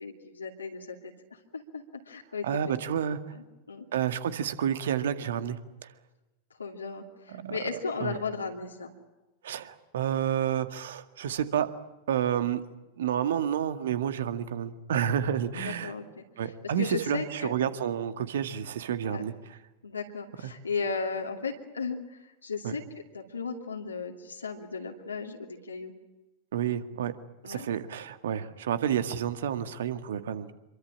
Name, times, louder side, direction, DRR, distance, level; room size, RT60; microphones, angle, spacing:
voice 1, 0.0-2.5 3.3-3.8 6.6-8.9 15.5-17.6 19.0-19.2 19.8-22.8 23.1-25.9 27.4-27.7, left 4 dB, 75° left, 0 dB, 2.7 m, -36 dB
voice 2, 2.4-3.2 3.9-5.6 7.3-8.2 9.4-11.7 12.1-12.6 13.0-15.9 16.4-19.3 20.4-20.5 22.6-22.7 26.5-27.1 27.4-30.5, right 9 dB, 60° right, 10 dB, 1.9 m, -30 dB
27.0 x 23.5 x 8.8 m, 1.1 s
figure-of-eight pair, 90°, 0 cm